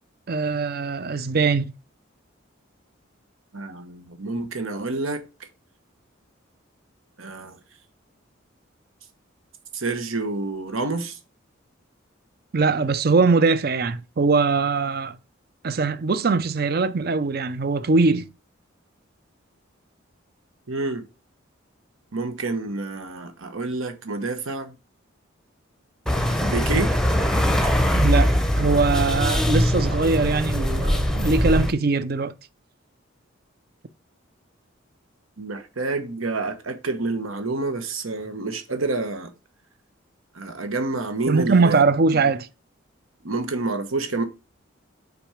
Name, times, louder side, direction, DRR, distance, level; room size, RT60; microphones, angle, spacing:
voice 1, 0.3-1.7 12.5-15.2 15.6-18.3 27.9-32.3 41.3-42.5, right 4 dB, 50° right, 0.5 m, -21 dB
voice 2, 3.5-5.2 7.2-7.6 9.7-11.2 20.7-21.0 22.1-24.7 26.4-26.9 35.4-39.3 40.3-41.8 43.2-44.2, right 3 dB, 85° right, 1.2 m, -28 dB
sound 1, 26.1-31.7, equal, 5° left, 0.7 m, -21 dB
6.0 x 4.3 x 5.0 m
head